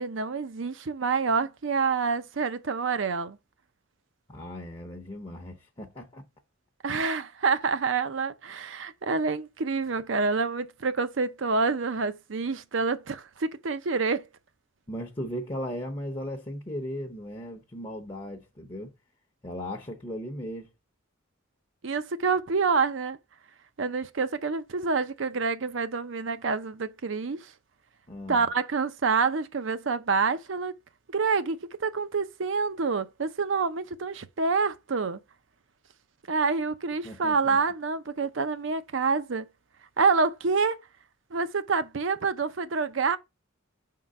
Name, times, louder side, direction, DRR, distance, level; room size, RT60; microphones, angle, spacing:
voice 1, 0.0-3.4 6.8-14.3 21.8-23.2 23.8-27.5 28.3-30.7 31.1-35.2 36.3-39.5 40.0-40.8 41.3-43.2, right 4 dB, 65° right, 0.6 m, -27 dB
voice 2, 4.3-6.3 14.9-18.9 19.4-20.7 28.1-28.5 37.0-37.6, equal, 25° left, 0.7 m, -37 dB
5.5 x 3.8 x 5.4 m
head